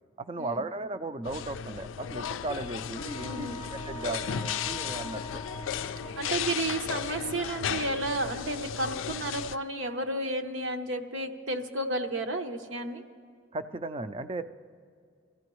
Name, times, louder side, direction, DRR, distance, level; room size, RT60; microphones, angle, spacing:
voice 1, 0.2-3.5 3.9-5.4 13.5-14.4, right 2 dB, 30° right, 11 dB, 0.4 m, -36 dB
sound 1, 1.2-9.6, left 8 dB, 90° left, 0.4 m, -35 dB
Wind instrument woodwind instrument, 2.9-8.7, equal, 30° left, 0.7 m, -44 dB
voice 2, 3.2-3.6 6.2-13.0, right 2 dB, 75° right, 5 dB, 0.9 m, -32 dB
24.5 x 14.5 x 3.1 m, 2.2 s
head